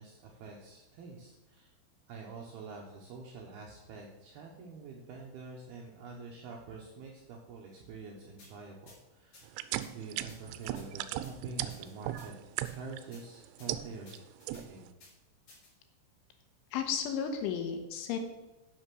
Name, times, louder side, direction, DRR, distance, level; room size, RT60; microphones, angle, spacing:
voice 1, 0.0-1.7 2.1-9.6 9.9-12.3 12.7-14.2 14.5-14.9, right 4 dB, 75° right, -1 dB, 2.4 m, -46 dB
sound 1, 8.4-8.5 8.9-9.0 9.3-9.4 9.8-9.9 10.3-10.9 11.2-11.3 11.7-12.3 12.6-12.8 13.1-13.2 13.6-13.7 14.1-14.6 15.0-15.1 15.5-15.7, left 2 dB, 40° left, 4.9 m, -56 dB
sound 2, 9.5-13.0 13.4-14.2 14.5-14.9, right 14 dB, 90° right, 3.3 m, -36 dB
voice 2, 16.7-18.2, left 7 dB, 75° left, 6 dB, 3.3 m, -33 dB
10.0 x 6.8 x 6.3 m, 1.0 s
omnidirectional pair, 5.9 m